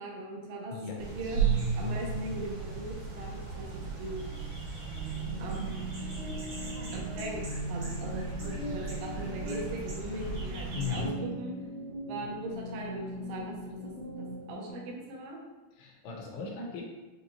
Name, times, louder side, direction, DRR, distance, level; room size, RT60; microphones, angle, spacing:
voice 1, 0.0-0.7 1.1-1.4 1.8-4.3 5.4-5.9 6.9-11.5 12.1-13.9 14.2-15.4, right 1 dB, 80° right, -2 dB, 2.8 m, -39 dB
sound 1, 1.0-11.1, right 5 dB, 65° right, 2.4 m, -35 dB
sound 2, 4.8-14.7, right 1 dB, 60° left, 1.9 m, -39 dB
voice 2, 10.8-11.2 15.7-16.8, left 6 dB, 85° left, -1 dB, 2.8 m, -37 dB
6.7 x 2.6 x 2.9 m, 1.2 s
omnidirectional pair, 4.6 m